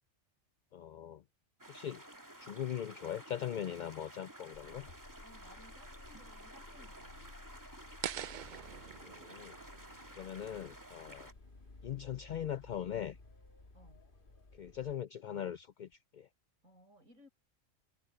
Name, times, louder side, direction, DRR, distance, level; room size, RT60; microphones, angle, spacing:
voice 1, 0.7-1.2 1.7-2.0 2.4-4.9 9.0-9.5 10.1-11.3 11.8-13.2 14.5-16.3, left 10 dB, 70° left, 0.4 m, -40 dB
sound 1, 1.6-11.3, right 1 dB, 15° right, 2.6 m, -53 dB
sound 2, 4.5-14.9, left 3 dB, 40° left, 2.0 m, -56 dB
voice 2, 5.2-7.3 13.7-14.0 16.6-17.3, equal, 90° right, 6.2 m, -61 dB
sound 3, 8.0-11.1, right 9 dB, 60° right, 0.5 m, -45 dB
omnidirectional pair, 1.3 m